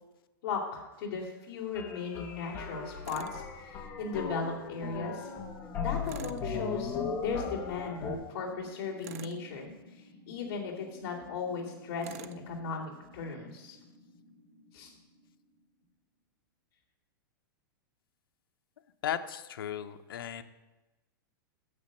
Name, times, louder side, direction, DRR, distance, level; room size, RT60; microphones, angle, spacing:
voice 1, 0.4-5.3 5.8-13.8 14.7-14.9, left 5 dB, 40° left, -6 dB, 2.5 m, -37 dB
sound 1, 1.7-8.1, left 5 dB, 15° left, 1.0 m, -37 dB
sound 2, 2.0-16.0, equal, 15° right, 3.7 m, -55 dB
Tools, 3.1-3.4 6.1-6.5 9.0-9.5 12.0-12.4, right 10 dB, 40° right, 0.4 m, -46 dB
voice 2, 19.0-20.4, left 10 dB, 80° left, 8 dB, 0.8 m, -35 dB
8.6 x 7.6 x 6.5 m, 1.1 s
supercardioid pair, 175°, 12 cm